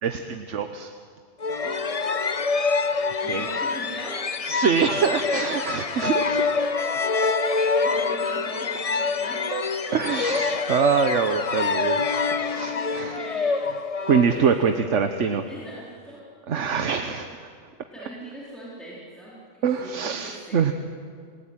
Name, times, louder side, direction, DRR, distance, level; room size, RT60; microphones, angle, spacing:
voice 1, 0.0-0.9 3.3-3.5 4.4-6.4 7.0-7.1 9.5-9.6 9.9-13.2 14.1-15.5 16.5-17.3 19.6-20.7, right 6 dB, 75° right, 7 dB, 1.3 m, -24 dB
sound 1, 1.4-14.9, left 4 dB, 35° left, 0.7 m, -26 dB
voice 2, 1.4-1.9 3.2-4.3 5.0-6.5 7.4-9.5 12.7-13.9 14.2-14.6 15.5-17.1 17.9-20.7, right 1 dB, ahead, -7 dB, 4.4 m, -41 dB
28.0 x 18.0 x 9.1 m, 2.2 s
omnidirectional pair, 1.3 m